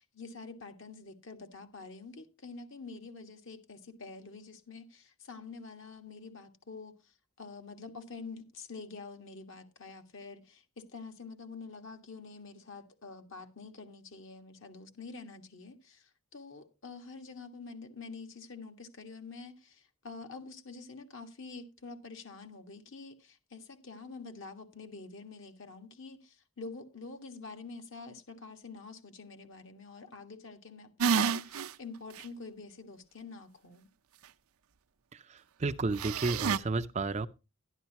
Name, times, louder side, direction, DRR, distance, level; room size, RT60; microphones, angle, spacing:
voice 1, 0.0-33.9, left 4 dB, 60° left, 1.7 m, -47 dB
sound 1, 31.0-31.7 32.2-32.3 36.0-36.6, right 6 dB, 80° right, 0.6 m, -29 dB
voice 2, 35.1-37.3, right 3 dB, 30° right, 0.5 m, -32 dB
11.5 x 11.5 x 2.9 m
head